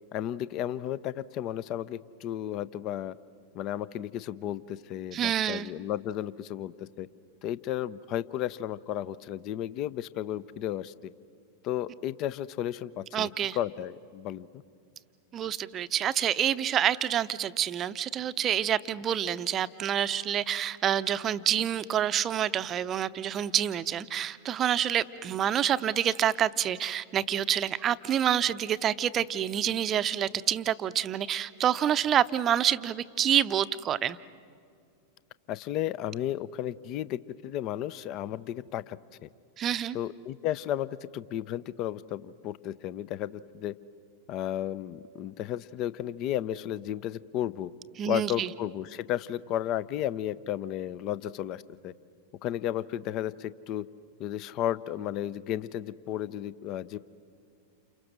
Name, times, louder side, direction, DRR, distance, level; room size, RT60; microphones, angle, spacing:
voice 1, 0.1-3.2 3.5-7.1 7.4-10.9 11.6-14.6 35.5-39.3 39.9-43.7 44.3-47.7 48.1-51.9 52.4-53.9 54.2-57.0, left 11 dB, 40° left, 19 dB, 0.7 m, -33 dB
voice 2, 5.1-5.7 13.1-13.6 15.3-34.2 39.6-40.0 48.0-48.5, right 10 dB, 30° right, 14 dB, 0.7 m, -27 dB
29.5 x 29.5 x 6.3 m, 2.3 s
figure-of-eight pair, 90°, 0 cm